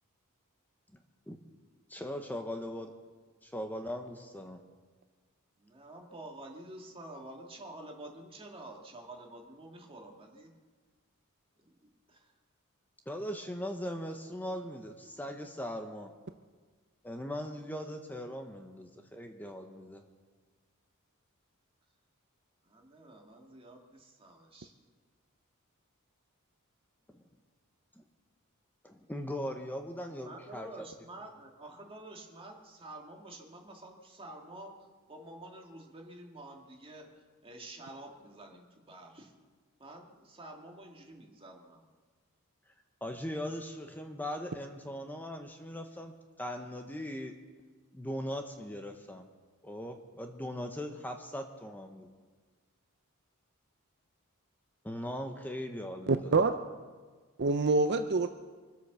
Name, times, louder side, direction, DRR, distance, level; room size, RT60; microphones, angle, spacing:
voice 1, 1.9-2.9 3.4-4.6 13.1-16.1 17.0-20.0 27.1-27.2 28.0-28.1 28.8-30.7 43.0-47.3 47.9-49.2 49.6-52.1 54.8-56.3, equal, 10° left, 4 dB, 1.0 m, -39 dB
voice 2, 5.6-10.5 11.6-11.7 12.1-12.3 22.6-24.7 30.2-34.7 35.1-39.3 39.8-41.8, right 1 dB, 25° right, 1 dB, 2.3 m, -49 dB
voice 3, 56.1-56.5 57.4-58.3, right 3 dB, 50° right, 8 dB, 0.6 m, -26 dB
25.0 x 8.3 x 6.9 m, 1.5 s
head